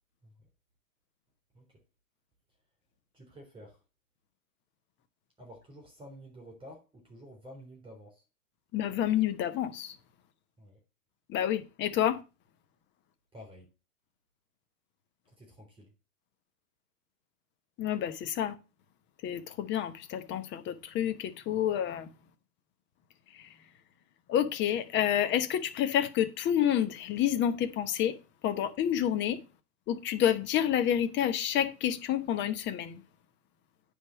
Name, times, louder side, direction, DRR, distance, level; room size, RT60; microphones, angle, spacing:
voice 1, 3.1-3.8 5.4-8.2 10.6-10.8 13.3-13.7 15.4-15.9, equal, 10° right, 3.7 m, -50 dB
voice 2, 8.7-9.9 11.3-12.2 17.8-18.5 19.2-22.1 23.3-23.5 24.3-28.2 28.4-29.4 29.9-33.0, left 10 dB, 25° left, 1.0 m, -29 dB
9.4 x 3.7 x 6.9 m
hypercardioid pair, 115°, 42 cm